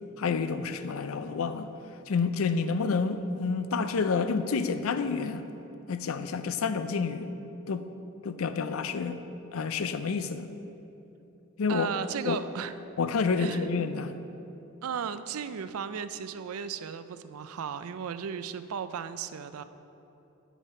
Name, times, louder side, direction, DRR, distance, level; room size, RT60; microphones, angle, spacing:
voice 1, 0.2-1.7 2.1-5.5 5.9-7.3 7.7-7.9 8.2-9.2 9.5-10.5 11.6-11.9 12.3-12.4 13.0-14.2, left 5 dB, 75° left, 11 dB, 0.5 m, -29 dB
voice 2, 11.7-12.7 13.4-13.7 14.8-19.6, right 7 dB, 90° right, 12 dB, 0.4 m, -35 dB
9.2 x 8.1 x 4.3 m, 3.0 s
head